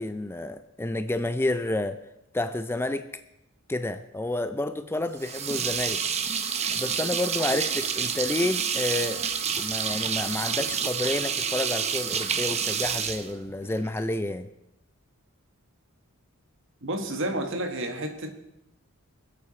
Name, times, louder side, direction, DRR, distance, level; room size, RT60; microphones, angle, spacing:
voice 1, 0.0-2.0 2.3-3.1 3.7-6.0 6.7-9.3 9.6-14.5, left 2 dB, 10° left, 0.4 m, -30 dB
sound 1, 5.2-14.0, right 7 dB, 30° right, 0.7 m, -29 dB
voice 2, 16.8-18.3, right 1 dB, 60° right, 1.8 m, -30 dB
24.5 x 8.4 x 4.4 m
head